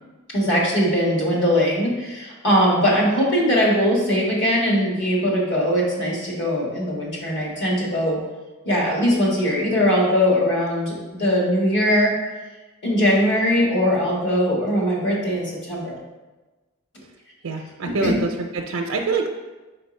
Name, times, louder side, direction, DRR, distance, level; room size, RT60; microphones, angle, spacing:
voice 1, 0.3-8.2 8.7-12.1 12.8-16.0 17.8-18.1, equal, 60° left, -3 dB, 1.7 m, -20 dB
voice 2, 17.4-19.3, right 4 dB, 80° right, 2 dB, 0.5 m, -25 dB
4.3 x 4.2 x 5.2 m, 1.2 s
head